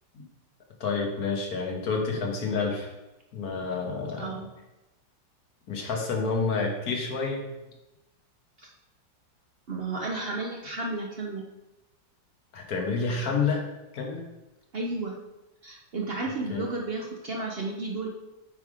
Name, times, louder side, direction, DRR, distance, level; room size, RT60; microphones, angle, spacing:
voice 1, 0.8-2.9 3.3-4.4 5.7-7.4 12.5-13.6 13.9-14.2 16.5-16.6, left 4 dB, 55° left, 1 dB, 1.6 m, -29 dB
voice 2, 4.1-4.5 8.6-8.7 9.7-11.4 14.7-15.2 15.6-18.1, right 3 dB, 80° right, 0 dB, 0.5 m, -32 dB
8.6 x 3.5 x 4.9 m, 1.0 s
omnidirectional pair, 2.0 m